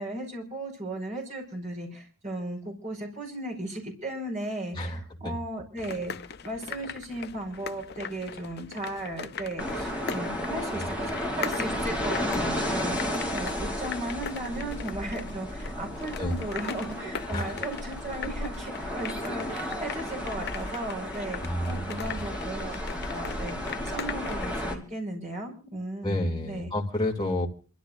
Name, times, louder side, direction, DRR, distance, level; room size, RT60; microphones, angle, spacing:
voice 1, 0.0-6.1 6.4-21.4 21.6-22.8 23.1-26.7, right 1 dB, 35° right, 1 dB, 5.1 m, -36 dB
voice 2, 4.7-5.3 16.2-16.4 17.3-17.6 21.4-22.2 26.0-27.5, left 1 dB, 20° left, -1 dB, 2.8 m, -30 dB
sound 1, 5.8-24.6, left 6 dB, 50° left, 0.7 m, -40 dB
sound 2, 9.6-24.7, equal, 5° right, 2.9 m, -33 dB
28.0 x 14.0 x 2.6 m, 0.38 s
head